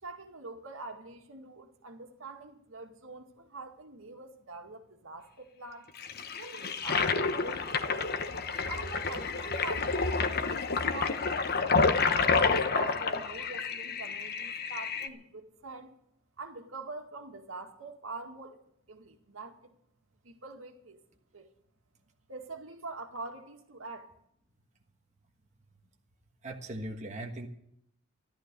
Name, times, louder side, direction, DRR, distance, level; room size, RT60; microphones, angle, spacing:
voice 1, 0.0-5.9 6.4-8.1 8.7-11.4 11.7-16.0 16.4-18.6 18.9-19.7 20.2-21.0 21.3-21.5 22.3-24.1, right 3 dB, 80° right, 2.0 m, -45 dB
Toilet flush, 6.0-15.1, left 4 dB, 50° left, 1.1 m, -29 dB
voice 2, 26.4-27.5, right 1 dB, 35° right, 1.5 m, -39 dB
14.5 x 12.0 x 6.8 m
head